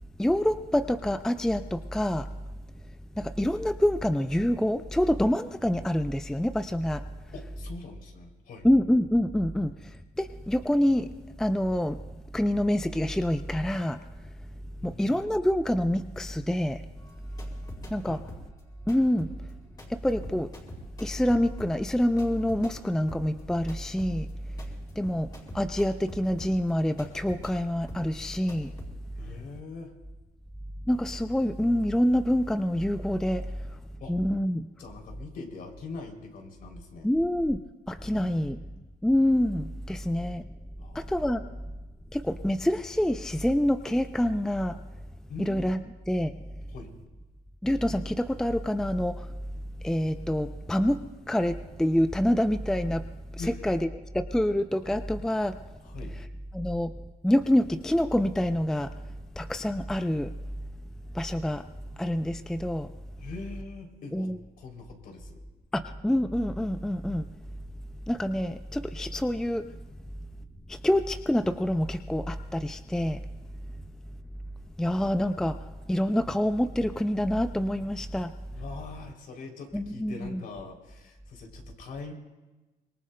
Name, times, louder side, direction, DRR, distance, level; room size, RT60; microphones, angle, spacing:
voice 1, 0.2-2.3 3.2-7.1 8.6-11.1 11.4-12.0 12.3-14.0 14.8-16.8 17.9-18.2 18.9-19.3 19.9-20.5 21.0-24.3 25.0-25.3 25.5-28.7 30.9-33.5 34.1-34.7 37.0-37.6 37.9-38.6 39.0-40.4 40.9-41.5 42.1-44.8 45.5-45.8 46.1-46.3 47.6-49.3 49.8-53.1 53.3-53.8 54.1-55.6 56.5-56.9 57.2-58.9 59.4-60.3 61.1-61.7 62.0-62.9 64.1-64.4 65.7-67.3 68.1-69.7 70.7-73.2 74.8-78.3 79.7-80.4, left 1 dB, 5° left, 9 dB, 0.4 m, -26 dB
voice 2, 7.3-8.7 14.8-15.3 18.0-18.2 29.2-29.9 34.0-34.1 34.8-37.1 38.0-38.6 40.8-41.2 45.3-45.7 46.7-46.9 53.4-53.6 55.8-56.1 63.2-64.3 64.6-65.4 78.5-82.1, left 3 dB, 60° left, 3 dB, 3.1 m, -42 dB
sound 1, 17.0-18.0 18.3-27.6 27.9-28.2 28.5-28.9, left 1 dB, 25° left, 4.6 m, -46 dB
25.5 x 22.0 x 2.2 m, 1.2 s
cardioid pair, 110°, 17 cm